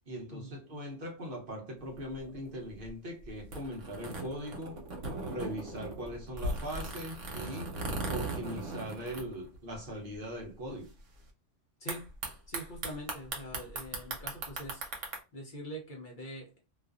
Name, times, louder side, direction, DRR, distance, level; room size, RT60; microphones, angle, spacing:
voice 1, 0.1-4.8 5.3-7.7 8.1-10.9, equal, 55° right, 0.8 m, -40 dB
sound 1, 1.8-9.9 10.1-10.2 10.4-10.9 11.9-15.2, right 2 dB, 90° right, 1.1 m, -39 dB
voice 2, 12.5-14.8 15.3-16.6, equal, 50° left, 0.7 m, -43 dB
2.5 x 2.3 x 2.3 m
omnidirectional pair, 1.2 m